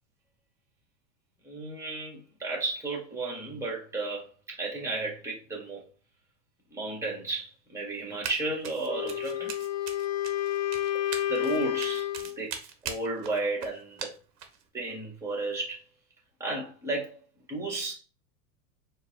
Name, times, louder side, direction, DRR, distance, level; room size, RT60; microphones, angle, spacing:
voice 1, 1.4-4.2 4.6-5.8 6.7-9.5 11.3-12.1 12.4-12.5 12.8-14.1 14.7-15.8 16.4-17.2 17.5-17.9, right 2 dB, 5° right, 1.8 m, -33 dB
Run, 8.2-8.4 8.6-14.6, right 8 dB, 35° right, 0.9 m, -40 dB
Wind instrument woodwind instrument, 8.8-12.4, left 12 dB, 35° left, 0.4 m, -30 dB
4.5 x 2.5 x 3.0 m
supercardioid pair, 130°, 47 cm